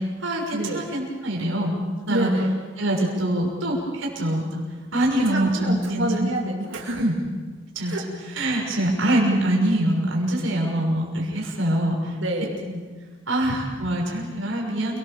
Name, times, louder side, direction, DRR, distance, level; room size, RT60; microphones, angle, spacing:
voice 1, 0.0-1.7 2.1-2.3 2.8-4.6 4.9-6.3 7.0-7.1 7.7-7.9 8.4-12.1 12.6-12.8 13.3-15.0, right 1 dB, 90° right, -1 dB, 6.3 m, -24 dB
voice 2, 2.1-2.5 5.2-7.1 7.9-8.0 12.2-12.6, right 1 dB, 70° right, 1 dB, 2.6 m, -27 dB
29.5 x 20.5 x 7.1 m, 1.4 s
head